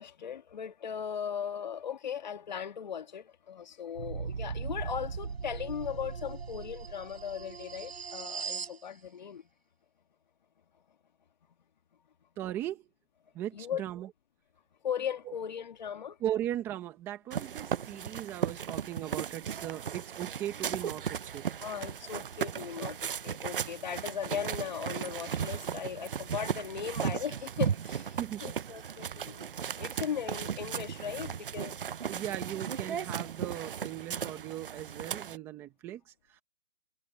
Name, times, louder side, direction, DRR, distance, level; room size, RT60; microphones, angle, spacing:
voice 1, 0.0-9.5 13.5-13.8 14.8-16.2 21.6-31.8, left 8 dB, 45° left, 1.7 m, -38 dB
sound 1, 3.9-8.8, right 5 dB, 70° right, 7.6 m, -39 dB
voice 2, 12.4-12.8 13.3-14.1 16.2-21.5 28.2-28.7 32.1-36.4, right 12 dB, 5° right, 1.0 m, -38 dB
sound 2, 17.3-35.4, right 8 dB, 55° right, 0.7 m, -36 dB
hypercardioid pair, 165°, 32 cm